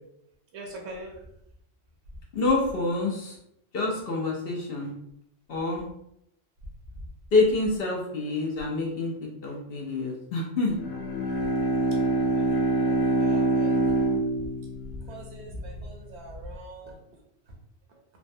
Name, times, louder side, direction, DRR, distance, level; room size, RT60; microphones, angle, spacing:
voice 1, 0.5-1.2 11.4-11.5 12.3-13.7 15.1-17.0, right 1 dB, 65° right, 0 dB, 1.0 m, -42 dB
voice 2, 2.3-3.4 3.7-4.9 5.5-5.9 7.3-9.1 9.4-10.7, left 3 dB, 60° left, -1 dB, 0.7 m, -26 dB
Bowed string instrument, 10.7-15.5, right 1 dB, 85° left, 1.0 m, -25 dB
3.3 x 2.1 x 2.6 m, 0.77 s
omnidirectional pair, 1.3 m